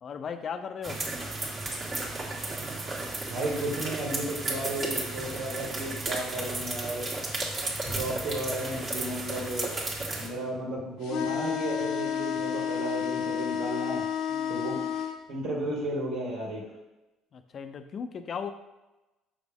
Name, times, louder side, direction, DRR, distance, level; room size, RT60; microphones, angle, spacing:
voice 1, 0.0-1.0 14.3-14.6 17.3-18.5, left 6 dB, 45° left, 9 dB, 0.6 m, -37 dB
sound 1, 0.8-10.3, right 2 dB, 40° right, 1.7 m, -34 dB
voice 2, 3.3-7.1 7.8-9.8 10.2-14.0 14.5-14.8 15.3-16.6, right 1 dB, 75° right, -3 dB, 2.1 m, -33 dB
sound 2, 11.0-15.2, left 8 dB, 80° left, 0.8 m, -30 dB
6.2 x 5.8 x 3.5 m, 1.0 s
supercardioid pair, 90°, 0 cm